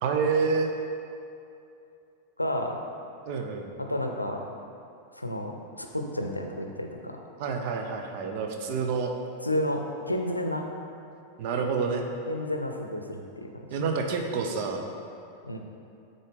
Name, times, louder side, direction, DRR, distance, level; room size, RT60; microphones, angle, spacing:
voice 1, 0.0-0.7 3.3-3.7 7.4-9.1 11.4-12.1 13.7-14.9, right 5 dB, 45° right, 4 dB, 0.7 m, -28 dB
voice 2, 2.4-2.8 3.8-4.4 5.1-7.2 9.4-10.6 12.3-13.7 15.4-15.6, left 1 dB, 85° left, 3 dB, 0.6 m, -31 dB
9.3 x 4.0 x 3.6 m, 2.6 s
figure-of-eight pair, 90°, 0 cm